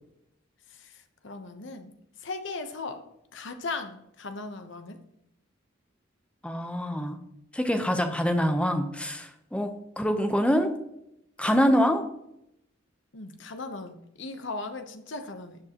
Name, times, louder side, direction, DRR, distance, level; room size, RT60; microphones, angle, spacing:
voice 1, 1.2-1.9 2.2-3.0 3.3-5.0 13.1-15.6, left 3 dB, 60° left, 7 dB, 1.0 m, -37 dB
voice 2, 6.4-7.2 7.5-10.7 11.4-12.1, equal, 5° left, 6 dB, 0.8 m, -25 dB
13.0 x 7.5 x 3.0 m, 0.80 s
head